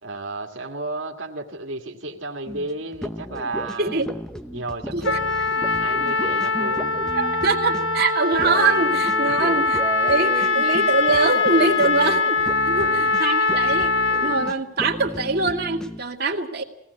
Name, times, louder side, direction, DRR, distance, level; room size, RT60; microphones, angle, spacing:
voice 1, 0.0-4.2 4.5-5.5 5.8-7.0 9.2-9.6 12.7-13.2, right 2 dB, 90° right, 1 dB, 2.0 m, -33 dB
sound 1, 2.5-16.0, equal, 5° left, 1.1 m, -34 dB
Trumpet, 5.0-14.5, left 3 dB, 85° left, 1.2 m, -22 dB
voice 2, 7.2-9.7 10.0-12.4 12.7-13.9 14.2-16.6, right 3 dB, 55° right, 1 dB, 2.4 m, -23 dB
21.0 x 17.5 x 8.3 m, 0.82 s
head